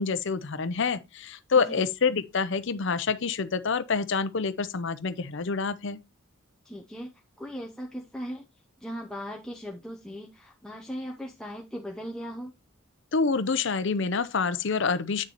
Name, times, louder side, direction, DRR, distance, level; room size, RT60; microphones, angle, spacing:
voice 1, 0.0-6.0 13.1-15.2, left 5 dB, 60° left, 0.6 m, -27 dB
voice 2, 1.6-1.9 6.6-8.4 8.8-12.5, equal, 5° left, 0.7 m, -38 dB
8.5 x 6.6 x 2.9 m
head